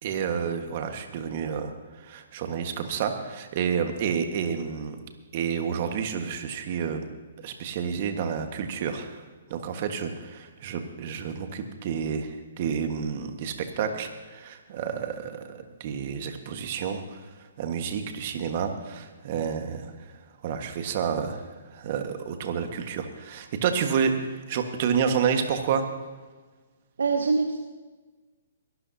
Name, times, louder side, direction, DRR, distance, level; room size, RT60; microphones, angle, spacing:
voice 1, 0.0-5.0 5.3-7.1 7.4-9.2 9.5-17.2 17.6-20.1 20.4-25.9, right 7 dB, 45° right, 6 dB, 1.5 m, -30 dB
voice 2, 27.0-27.6, right 4 dB, 80° right, 6 dB, 0.9 m, -24 dB
23.0 x 12.5 x 2.8 m, 1.3 s
hypercardioid pair, 135°, 0 cm